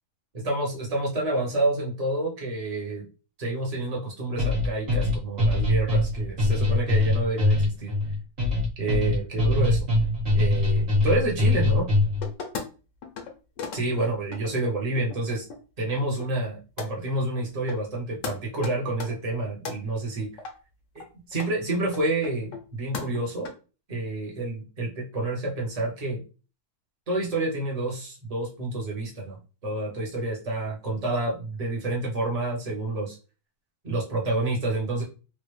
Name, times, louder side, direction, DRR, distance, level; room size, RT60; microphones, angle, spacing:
voice 1, 0.3-3.1 3.4-7.9 8.8-9.9 10.3-11.9 13.7-15.4 15.8-20.3 20.9-23.5 23.9-26.2 27.1-33.2 33.8-35.0, right 2 dB, 30° right, -2 dB, 1.0 m, -29 dB
sound 1, 4.4-12.3, left 2 dB, 45° right, 1.6 m, -23 dB
sound 2, 12.2-12.6 13.0-13.3 13.6-15.6 15.9-16.5 16.8-16.9 17.4-17.5 17.7-18.0 18.2-18.3 18.6-19.8 20.4-20.5 21.0-21.1 21.3-21.5 21.9-22.7 22.9-23.5, left 5 dB, 60° left, 1.0 m, -36 dB
3.3 x 2.4 x 3.2 m, 0.33 s
omnidirectional pair, 1.6 m